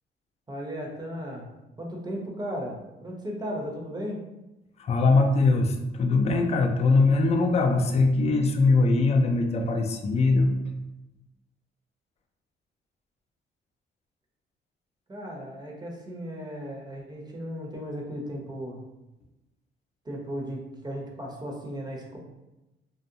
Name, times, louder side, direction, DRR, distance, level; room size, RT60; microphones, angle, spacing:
voice 1, 0.5-1.5 1.8-4.2 15.1-18.8 20.0-22.2, equal, 20° right, -1 dB, 0.6 m, -36 dB
voice 2, 4.8-10.5, left 3 dB, 35° left, 4 dB, 0.3 m, -22 dB
2.7 x 2.0 x 2.6 m, 0.99 s
cardioid pair, 90°, 20 cm